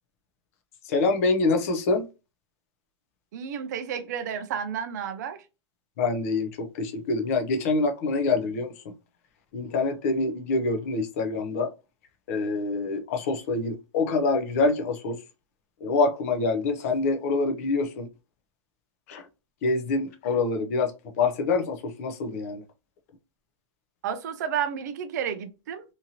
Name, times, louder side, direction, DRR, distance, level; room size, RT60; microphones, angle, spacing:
voice 1, 0.9-2.0 6.0-8.9 9.5-11.7 12.3-15.2 15.8-18.1 19.1-19.3 19.6-22.6, left 3 dB, 30° left, 0.4 m, -26 dB
voice 2, 3.3-5.4 24.0-25.8, right 8 dB, 35° right, 0.4 m, -31 dB
2.8 x 2.6 x 2.7 m
supercardioid pair, 175°, 16 cm